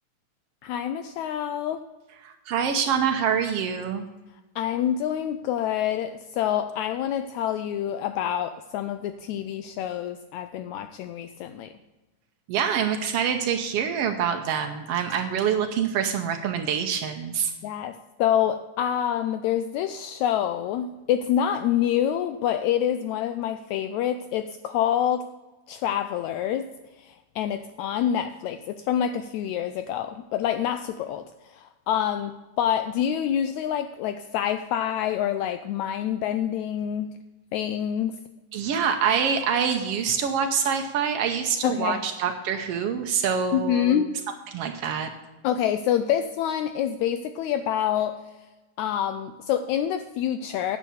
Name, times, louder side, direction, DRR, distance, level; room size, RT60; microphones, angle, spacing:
voice 1, 0.6-1.8 4.5-11.7 17.6-25.2 25.7-26.7 27.0-37.2 37.5-38.2 41.6-42.0 43.5-44.1 45.4-48.2 48.8-50.8, left 10 dB, 85° left, 10 dB, 1.6 m, -27 dB
voice 2, 2.2-4.0 12.5-17.5 38.5-44.0 44.5-45.1, right 7 dB, 80° right, 5 dB, 1.3 m, -25 dB
10.0 x 7.0 x 6.9 m, 1.1 s
omnidirectional pair, 3.8 m